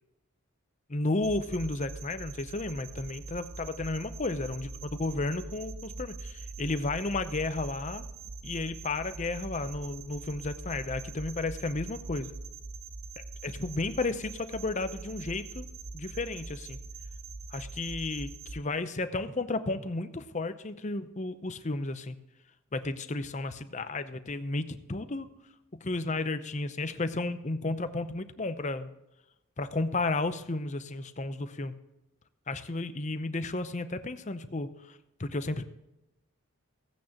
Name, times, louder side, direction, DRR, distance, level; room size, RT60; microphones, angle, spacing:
voice 1, 0.9-8.0 8.4-12.3 13.4-15.7 15.9-16.8 17.5-22.2 22.7-25.3 25.8-28.9 29.6-31.7 32.5-35.6, left 2 dB, 30° left, 10 dB, 0.7 m, -33 dB
sound 1, 1.2-18.6, right 3 dB, 85° right, 1.2 m, -43 dB
16.0 x 9.1 x 2.9 m, 0.92 s
head